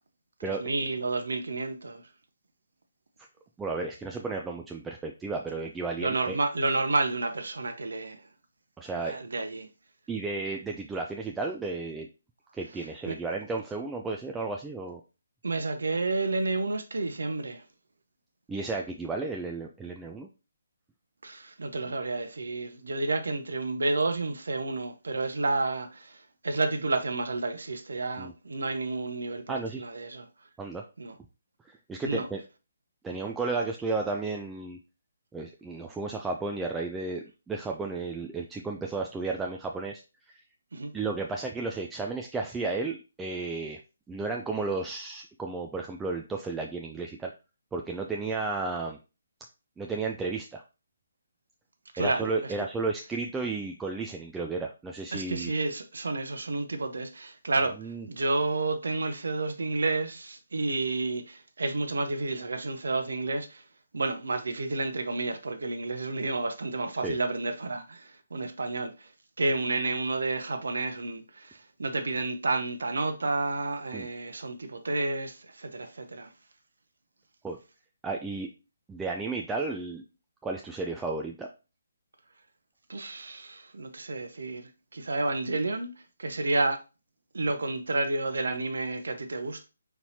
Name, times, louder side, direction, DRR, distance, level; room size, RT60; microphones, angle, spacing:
voice 1, 0.4-2.0 6.0-8.2 9.1-9.7 13.1-13.2 15.4-17.6 21.2-30.3 31.0-31.1 32.0-32.3 40.7-40.9 51.9-52.5 55.1-63.6 63.9-69.1 69.4-76.3 82.9-86.8 87.3-89.7, right 3 dB, 70° right, 0.8 m, -30 dB
voice 2, 3.6-6.4 8.8-9.2 10.1-12.1 12.5-15.0 18.5-20.3 28.2-28.3 29.5-29.8 30.6-30.8 31.6-32.4 33.0-34.8 35.3-40.0 40.3-40.4 40.9-43.8 44.1-47.3 47.7-49.0 49.8-50.6 52.0-55.5 57.8-58.1 67.0-67.2 73.9-74.1 77.4-77.6 78.0-78.5 78.9-80.0 80.4-81.5, right 3 dB, 10° right, 0.4 m, -33 dB
4.5 x 4.1 x 2.8 m
figure-of-eight pair, 140°, 0 cm